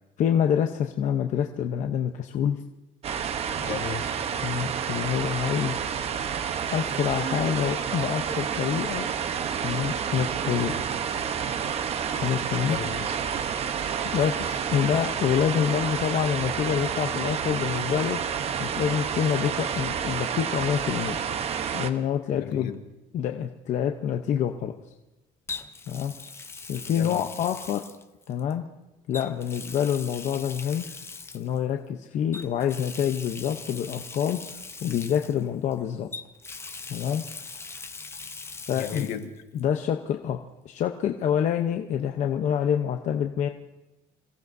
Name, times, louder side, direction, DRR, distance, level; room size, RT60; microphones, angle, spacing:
voice 1, 0.2-2.6 4.4-5.8 6.7-9.1 9.6-10.9 12.2-12.8 14.0-18.2 18.6-21.2 21.7-22.7 23.1-24.7 25.9-26.1 26.7-27.8 28.3-28.6 29.1-30.9 31.3-34.4 34.8-36.1 36.9-37.2 38.7-39.1 39.5-40.4 40.6-43.5, left 9 dB, 55° left, 4 dB, 0.8 m, -27 dB
sound 1, 3.0-21.9, right 7 dB, 45° right, 0.9 m, -29 dB
voice 2, 3.6-4.3 12.7-13.1 22.4-22.8 26.9-27.2 38.7-39.2, left 8 dB, 75° left, 5 dB, 1.7 m, -35 dB
Water tap faucet, 22.5-22.7 25.5-28.5 29.1-31.6 32.3-35.7 36.1-39.3 39.6-39.7 41.2-41.3, left 4 dB, 15° left, 0.7 m, -41 dB
27.5 x 16.5 x 2.7 m, 1.0 s
cardioid pair, 140°, 15 cm